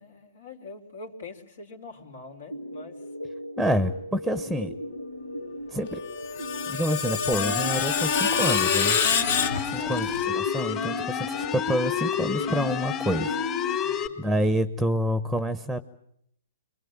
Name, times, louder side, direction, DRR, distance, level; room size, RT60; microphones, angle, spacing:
voice 1, 0.0-3.0 9.7-10.0 13.8-14.2, left 3 dB, 70° left, 5 dB, 4.4 m, -44 dB
sound 1, 2.5-13.8, left 1 dB, 90° left, 1.9 m, -38 dB
voice 2, 3.6-4.7 5.7-6.0 6.7-9.0 9.7-13.4 14.2-15.8, equal, ahead, 13 dB, 1.0 m, -27 dB
Screech, 6.0-10.3, left 6 dB, 55° left, 1.5 m, -27 dB
sound 2, 7.3-14.1, left 8 dB, 30° left, 3.4 m, -29 dB
26.5 x 22.5 x 8.9 m, 0.74 s
hypercardioid pair, 130°, 0 cm